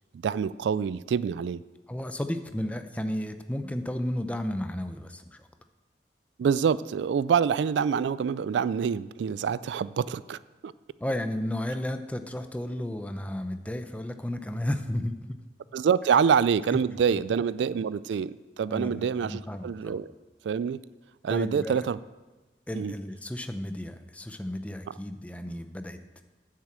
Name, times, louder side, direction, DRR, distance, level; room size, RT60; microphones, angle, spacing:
voice 1, 0.2-1.6 6.4-10.7 15.7-20.1 20.4-20.8 21.2-22.0 22.7-22.9, right 7 dB, 85° right, 18 dB, 0.3 m, -26 dB
voice 2, 1.9-5.5 11.0-15.4 17.1-17.2 18.7-20.0 21.3-21.9 22.7-26.2, left 1 dB, 10° left, 8 dB, 0.6 m, -33 dB
9.8 x 7.5 x 7.4 m, 1.2 s
head